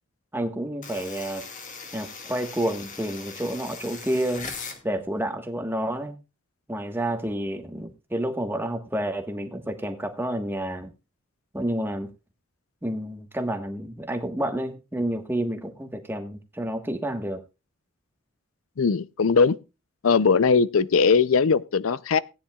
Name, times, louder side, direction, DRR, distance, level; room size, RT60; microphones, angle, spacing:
voice 1, 0.3-1.5 1.9-4.5 4.8-6.2 6.7-10.9 11.5-12.1 12.8-17.4, right 1 dB, 10° right, 1.4 m, -29 dB
sound 1, 0.8-4.8, left 5 dB, 40° left, 1.9 m, -39 dB
voice 2, 18.8-19.6 20.0-22.2, left 5 dB, 90° left, 0.5 m, -20 dB
18.0 x 9.9 x 2.4 m
head